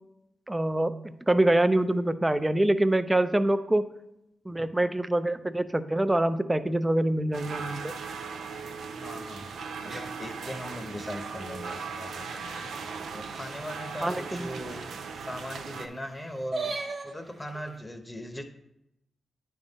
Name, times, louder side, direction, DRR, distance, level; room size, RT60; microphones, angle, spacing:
voice 1, 0.5-3.9 4.5-7.9 14.0-14.5, right 1 dB, 15° right, 11 dB, 0.5 m, -25 dB
sound 1, 7.3-15.9, right 5 dB, 80° right, 0.5 m, -38 dB
voice 2, 9.0-9.5 9.8-12.7 13.1-14.8 15.1-16.7 17.0-18.4, equal, 15° left, 6 dB, 0.9 m, -39 dB
sound 2, 9.5-12.7 13.1-13.2 13.5-13.6 13.8-17.8, right 3 dB, 60° right, 0.8 m, -41 dB
9.8 x 3.6 x 4.0 m, 0.85 s
supercardioid pair, 50°, 0 cm